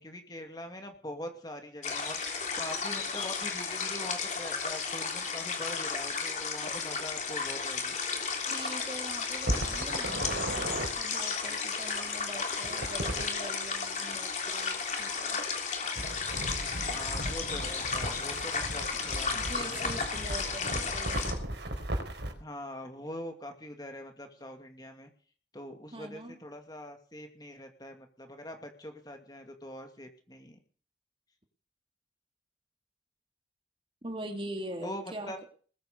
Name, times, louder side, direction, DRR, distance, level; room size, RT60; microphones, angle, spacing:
voice 1, 0.0-2.2 2.6-7.9 16.9-19.9 22.4-25.1 25.5-30.6 34.8-35.4, left 1 dB, 20° left, 5 dB, 2.4 m, -43 dB
sound 1, 1.8-21.3, left 5 dB, 40° left, 3.5 m, -34 dB
voice 2, 8.5-15.5 18.9-19.0 19.3-21.3 25.9-26.4 34.0-35.5, right 1 dB, 30° right, 5 dB, 2.5 m, -43 dB
sound 2, 9.4-10.9 12.6-13.3 16.0-22.3, right 1 dB, 80° right, 4.3 m, -36 dB
20.5 x 9.3 x 6.8 m, 0.42 s
head